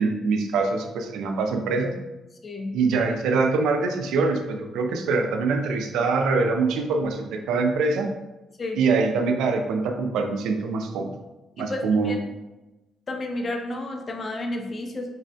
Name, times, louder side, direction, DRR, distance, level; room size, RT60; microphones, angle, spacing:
voice 1, 0.0-1.9 2.7-8.1 8.8-11.1 11.6-12.2, right 4 dB, 85° right, 4 dB, 0.4 m, -24 dB
voice 2, 2.4-2.8 8.6-8.8 11.6-12.2 13.1-15.1, left 2 dB, 40° left, 3 dB, 0.4 m, -31 dB
4.4 x 2.1 x 2.6 m, 1.1 s
cardioid pair, 90°, 0 cm